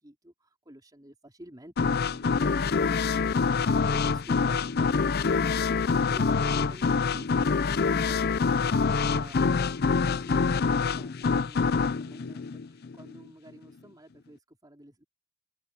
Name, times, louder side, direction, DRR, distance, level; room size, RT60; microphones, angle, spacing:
voice 1, 0.0-15.0, right 1 dB, 20° right, 4.3 m, -50 dB
sound 1, 1.8-13.2, left 5 dB, 50° left, 0.5 m, -25 dB
head